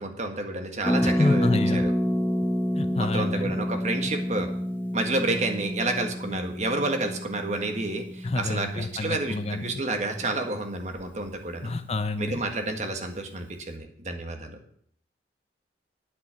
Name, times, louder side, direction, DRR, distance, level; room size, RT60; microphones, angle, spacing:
voice 1, 0.0-1.9 3.0-4.5 4.9-11.7 12.2-14.6, right 2 dB, 40° right, 5 dB, 1.7 m, -30 dB
Harp, 0.8-10.5 10.7-10.8 11.0-11.3, equal, 10° left, 1.3 m, -29 dB
voice 2, 1.0-1.8 2.7-3.6 8.2-9.8 11.6-12.4, left 2 dB, 35° left, 10 dB, 0.7 m, -28 dB
9.6 x 8.8 x 7.6 m, 0.65 s
head